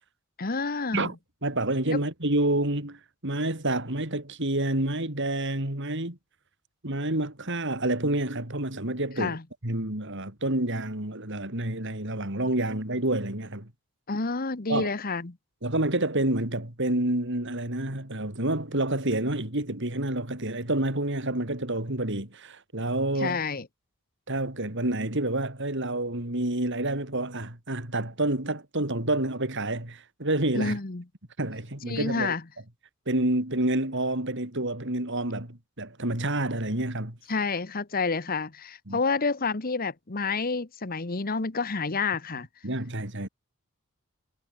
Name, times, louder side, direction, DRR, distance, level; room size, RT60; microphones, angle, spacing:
voice 1, 0.4-1.1 1.9-2.0 9.2-9.4 14.1-15.4 23.2-23.7 30.5-31.0 31.9-32.4 37.3-42.5, left 4 dB, 45° left, 1.2 m, -29 dB
voice 2, 1.4-6.2 6.8-9.4 9.6-13.7 14.7-14.9 15.6-23.4 24.3-30.8 31.4-32.3 33.1-37.2 38.9-39.0 42.6-43.3, right 1 dB, 60° right, 4.8 m, -28 dB
head